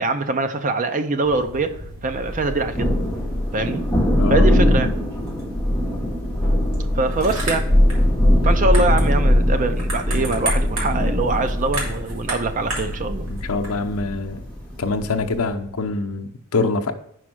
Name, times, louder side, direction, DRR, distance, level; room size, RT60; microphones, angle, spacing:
voice 1, 0.0-1.8 2.0-2.9 3.5-3.8 4.3-4.9 7.0-7.7 8.4-13.3, right 2 dB, 35° right, 9 dB, 0.5 m, -23 dB
sound 1, 1.2-14.0, right 1 dB, 65° right, 2.2 m, -34 dB
Thunder, 2.3-15.5, left 1 dB, 5° left, 1.5 m, -21 dB
voice 2, 4.2-4.5 13.3-14.4 14.8-16.9, left 3 dB, 75° left, 6 dB, 0.7 m, -24 dB
5.2 x 4.8 x 6.0 m, 0.70 s
head